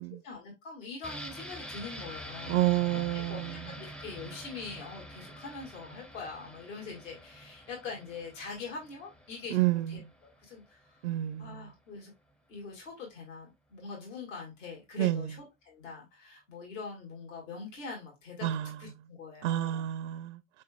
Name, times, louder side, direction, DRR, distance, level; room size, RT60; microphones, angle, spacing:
voice 1, 0.2-11.1 11.4-12.1 12.5-19.9, left 4 dB, 80° left, 2.3 m, -44 dB
sound 1, 1.0-10.7 11.0-11.1, equal, 5° left, 0.4 m, -46 dB
voice 2, 2.5-3.6 9.5-9.9 11.0-11.7 15.0-15.3 18.4-18.8 19.4-20.6, right 15 dB, 65° right, 0.5 m, -29 dB
4.6 x 4.2 x 2.4 m
hypercardioid pair, 100°, 37 cm